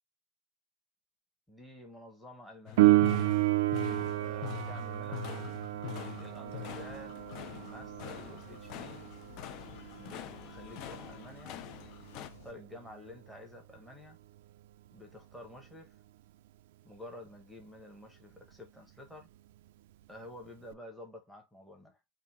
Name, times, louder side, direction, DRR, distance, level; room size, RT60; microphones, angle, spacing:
voice 1, 1.5-3.1 4.2-5.4 5.7-9.0 9.9-11.6 12.1-14.2 14.9-15.9 16.8-19.3 20.1-22.0, left 1 dB, ahead, 0.9 m, -50 dB
sound 1, 2.7-12.3, left 14 dB, 35° left, 0.4 m, -44 dB
Piano, 2.8-13.2 20.7-20.8, right 17 dB, 60° right, 0.4 m, -31 dB
sound 2, 6.4-12.5, left 7 dB, 80° left, 1.5 m, -55 dB
3.8 x 2.6 x 4.2 m
supercardioid pair, 175°, 0 cm